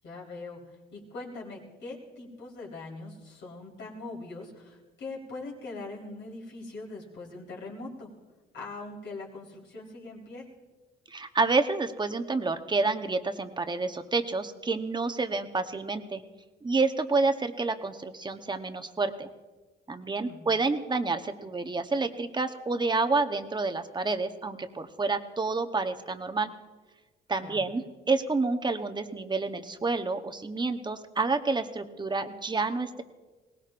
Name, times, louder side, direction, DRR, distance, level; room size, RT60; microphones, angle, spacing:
voice 1, 0.0-8.1 8.5-10.5 20.2-20.5 27.4-27.6, left 3 dB, 65° left, -3 dB, 4.0 m, -42 dB
voice 2, 11.1-16.2 16.6-19.3 19.9-26.5 27.3-33.0, right 3 dB, 20° right, 7 dB, 0.9 m, -29 dB
21.5 x 18.5 x 2.5 m, 1.3 s
cardioid pair, 90°, 20 cm